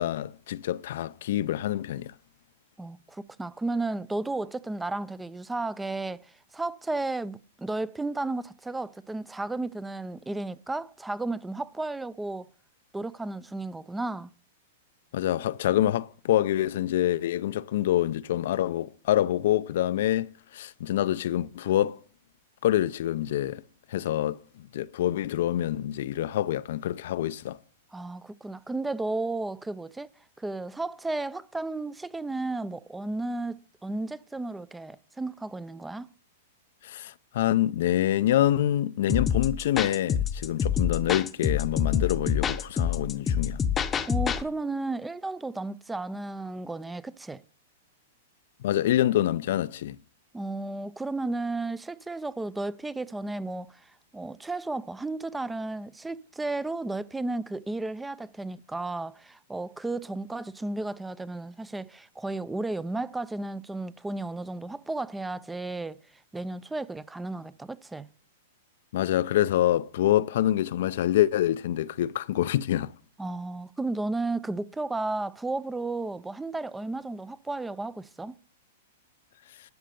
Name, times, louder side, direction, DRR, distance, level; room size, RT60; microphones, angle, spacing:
voice 1, 0.0-2.1 15.1-22.0 22.6-23.6 23.9-27.6 36.8-43.6 48.6-50.0 68.9-72.9, left 12 dB, 65° left, 0.4 m, -26 dB
voice 2, 2.8-12.5 12.9-14.3 27.9-30.1 30.4-36.1 44.0-47.4 50.3-66.0 66.3-68.1 73.2-78.4, right 2 dB, 5° right, 0.4 m, -33 dB
sound 1, 39.1-44.4, left 7 dB, 20° left, 0.7 m, -27 dB
11.5 x 6.4 x 6.8 m
hypercardioid pair, 130°, 0 cm